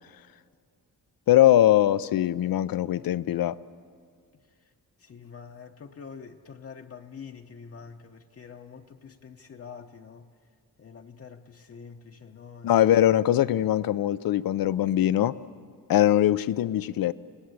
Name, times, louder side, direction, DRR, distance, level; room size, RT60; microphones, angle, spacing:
voice 1, 1.3-3.6 12.6-15.3 15.9-17.1, left 12 dB, 75° left, 0.6 m, -21 dB
voice 2, 5.0-10.3 10.8-13.2, left 6 dB, 40° left, 0.9 m, -46 dB
27.0 x 19.0 x 8.2 m
wide cardioid pair, 150°, 35 cm